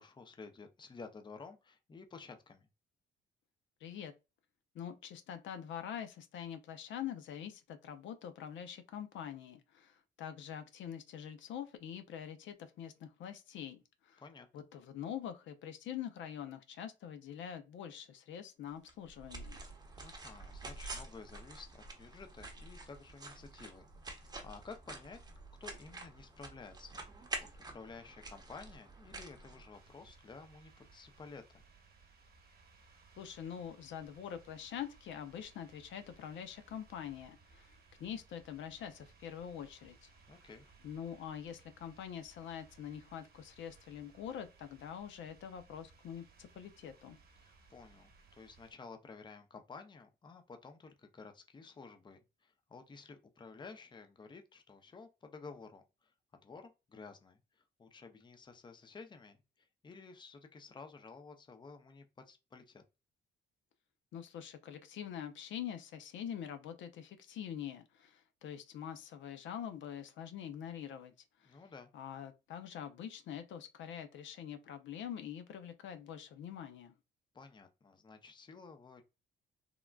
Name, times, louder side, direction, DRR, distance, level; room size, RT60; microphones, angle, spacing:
voice 1, 0.0-2.7 14.2-14.7 20.0-25.2 25.6-27.3 27.7-31.6 40.3-40.6 47.4-62.8 71.4-71.9 77.3-79.0, left 4 dB, 25° left, 0.5 m, -53 dB
voice 2, 3.8-4.1 4.7-14.2 14.5-19.6 33.2-40.1 40.8-47.2 64.1-71.1 71.4-71.6 71.9-76.9, left 9 dB, 70° left, 0.5 m, -45 dB
sound 1, 18.9-30.2, right 2 dB, 20° right, 0.8 m, -48 dB
sound 2, 29.7-48.7, right 4 dB, 50° right, 1.1 m, -63 dB
3.6 x 2.1 x 2.2 m
cardioid pair, 90°, 20 cm